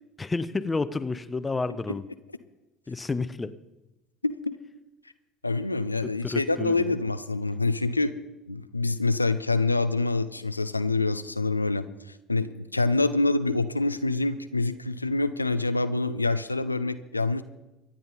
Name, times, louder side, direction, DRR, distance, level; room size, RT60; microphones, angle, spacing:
voice 1, 0.2-2.0 2.9-3.5 6.0-6.9, left 3 dB, 20° left, 14 dB, 0.8 m, -30 dB
voice 2, 4.2-4.6 5.4-8.2 8.5-17.4, left 3 dB, 90° left, 12 dB, 0.4 m, -26 dB
24.5 x 10.0 x 4.1 m, 0.98 s
figure-of-eight pair, 60°, 0 cm